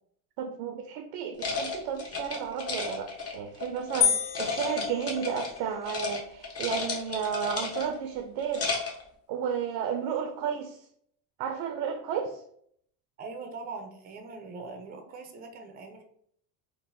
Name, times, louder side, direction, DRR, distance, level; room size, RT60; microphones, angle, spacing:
voice 1, 0.4-8.7 9.3-10.9 11.4-12.4, right 8 dB, 70° right, 5 dB, 0.6 m, -33 dB
sound 1, 1.4-4.0 4.3-5.6 5.8-6.2 6.4-8.0 8.4-9.0, left 4 dB, 35° left, 0.9 m, -33 dB
sound 2, 4.0-5.8, left 9 dB, 85° left, 0.5 m, -29 dB
voice 2, 13.2-16.0, right 3 dB, 20° right, 4 dB, 0.4 m, -41 dB
3.8 x 2.1 x 2.6 m, 0.67 s
supercardioid pair, 110°, 44 cm